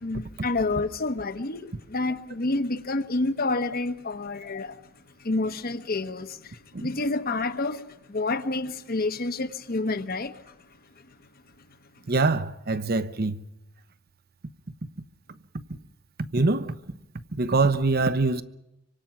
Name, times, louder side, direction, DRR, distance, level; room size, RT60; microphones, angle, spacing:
voice 1, 0.0-4.9 5.2-10.6 11.0-11.2 11.6-11.7, left 2 dB, 45° left, 1.1 m, -29 dB
voice 2, 12.1-13.4 16.3-16.8 17.3-18.4, right 3 dB, 50° right, 0.9 m, -24 dB
25.5 x 24.5 x 5.9 m
head